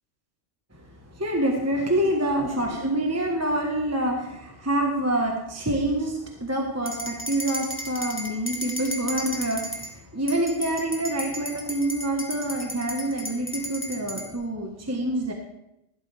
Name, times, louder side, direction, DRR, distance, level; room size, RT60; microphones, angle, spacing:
voice 1, 1.1-15.3, right 1 dB, 10° right, 1 dB, 1.3 m, -26 dB
sound 1, 6.9-9.9 10.3-14.3, equal, 10° left, 1.6 m, -34 dB
16.0 x 12.0 x 3.5 m, 0.84 s
omnidirectional pair, 1.3 m